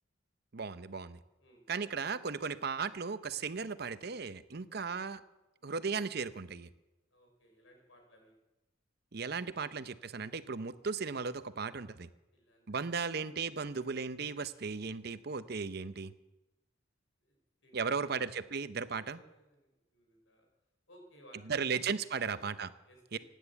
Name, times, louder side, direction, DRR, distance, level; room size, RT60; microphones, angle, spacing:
voice 1, 0.5-1.2 1.7-5.2 5.6-6.7 9.1-12.1 12.7-16.1 17.7-19.2 21.5-22.7 23.1-23.2, right 5 dB, 55° right, 13 dB, 0.7 m, -36 dB
voice 2, 1.4-2.2 7.1-8.4 12.3-13.4 17.2-20.5 20.9-21.9 22.2-23.2, equal, 85° left, 2 dB, 5.4 m, -61 dB
17.0 x 10.0 x 8.3 m, 1.0 s
head